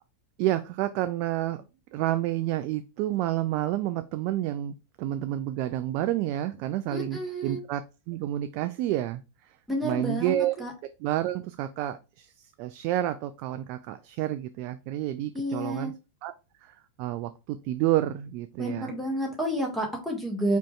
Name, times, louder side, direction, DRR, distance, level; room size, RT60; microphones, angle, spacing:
voice 1, 0.4-1.6 1.9-7.8 8.1-9.6 9.8-10.6 11.0-15.9 16.2-16.3 16.6-18.9, right 13 dB, 45° right, 11 dB, 0.3 m, -29 dB
voice 2, 6.9-7.6 9.7-10.7 15.3-15.9 18.6-20.6, right 1 dB, 5° left, 0 dB, 1.5 m, -30 dB
4.9 x 4.5 x 2.3 m, 0.28 s
figure-of-eight pair, 90°, 0 cm